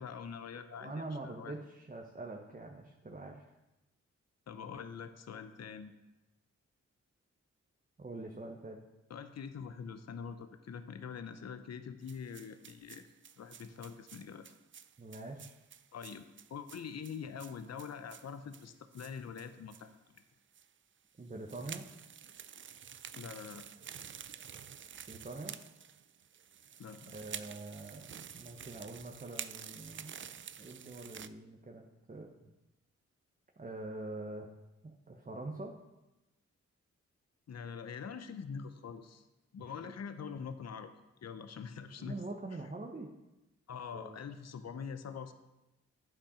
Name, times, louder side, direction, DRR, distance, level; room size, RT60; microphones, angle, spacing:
voice 1, 0.0-1.5 4.5-5.9 9.1-13.1 13.4-14.5 15.9-16.2 16.5-20.2 23.1-23.7 26.8-27.1 37.5-39.3 39.5-40.9 41.2-42.2 43.7-45.3, left 6 dB, 60° left, 10 dB, 0.7 m, -44 dB
voice 2, 0.8-3.5 8.0-8.8 15.0-15.5 21.2-21.9 24.9-25.5 27.1-30.2 30.6-32.5 33.6-34.5 34.8-35.7 39.6-39.7 42.0-43.1 43.9-44.2, right 2 dB, 25° right, 1 dB, 0.9 m, -44 dB
sound 1, 12.1-19.9 20.2-20.3 20.5-20.7 21.3-31.3, right 8 dB, 45° right, 0.4 m, -49 dB
8.9 x 5.8 x 5.0 m, 0.99 s
cardioid pair, 55°, 29 cm